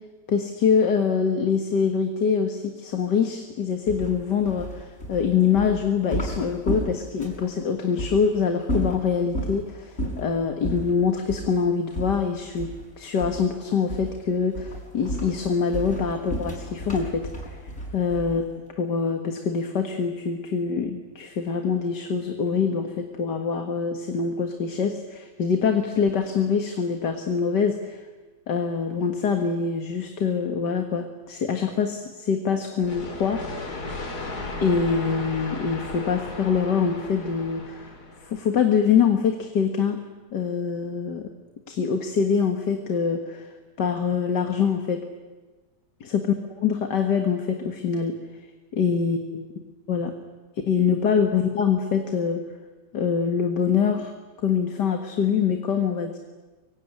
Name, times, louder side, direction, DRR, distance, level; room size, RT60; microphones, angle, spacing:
voice 1, 0.3-17.2 17.9-18.5 18.8-28.0 28.5-33.4 34.6-37.9 38.2-40.0 40.3-41.3 41.7-45.0 46.1-46.2 46.6-48.2 48.7-49.5 49.9-50.1 50.7-52.4 52.9-54.1 54.4-56.2, left 6 dB, 85° left, 5 dB, 2.3 m, -24 dB
sound 1, 3.9-7.5 8.0-8.2 8.6-9.6 10.0-10.3 10.6-10.9 11.3-11.5 11.9-12.9 13.2-13.5 13.9-14.2 14.5-18.5, right 1 dB, 40° left, 6.7 m, -32 dB
sound 2, 32.8-38.5, left 2 dB, 70° left, 3.5 m, -35 dB
24.5 x 24.0 x 9.8 m, 1.3 s
omnidirectional pair, 1.8 m